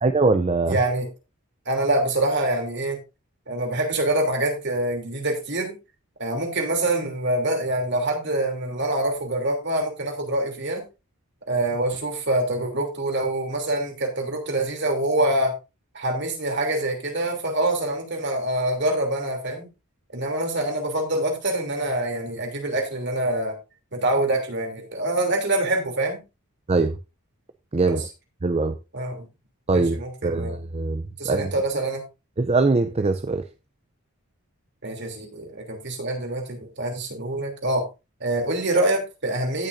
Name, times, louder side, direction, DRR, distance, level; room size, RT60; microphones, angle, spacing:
voice 1, 0.0-0.8 26.7-27.0 27.7-28.0 28.4-28.8 29.7-31.5 32.4-33.4, right 3 dB, 30° right, 0.5 m, -22 dB
voice 2, 0.7-1.1 1.6-3.0 3.5-5.7 6.2-10.8 11.5-15.5 15.9-19.7 20.1-23.6 23.9-26.2 27.9-28.1 28.9-29.3 29.7-30.6 31.2-32.0 34.8-37.9 38.2-39.7, right 1 dB, 50° right, 3.0 m, -25 dB
17.5 x 6.1 x 2.6 m
head